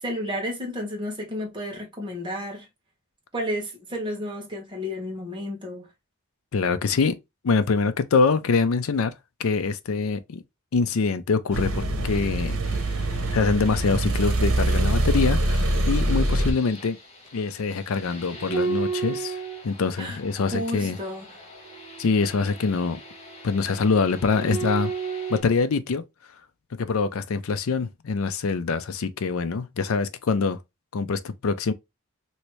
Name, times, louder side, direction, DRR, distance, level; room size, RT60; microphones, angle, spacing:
voice 1, 0.0-2.7 3.3-5.9 20.0-21.4, equal, 20° right, 1.2 m, -32 dB
voice 2, 6.5-7.2 7.4-9.1 9.4-10.4 10.7-12.6 13.3-17.0 17.3-19.4 19.6-21.0 22.0-23.0 23.4-24.9 25.3-26.0 26.7-30.6 30.9-31.7, left 4 dB, 70° left, 0.5 m, -24 dB
sound 1, 11.5-16.5, right 1 dB, 85° right, 1.0 m, -24 dB
sound 2, 12.6-25.4, right 4 dB, 30° left, 1.1 m, -36 dB
3.1 x 2.9 x 3.0 m
head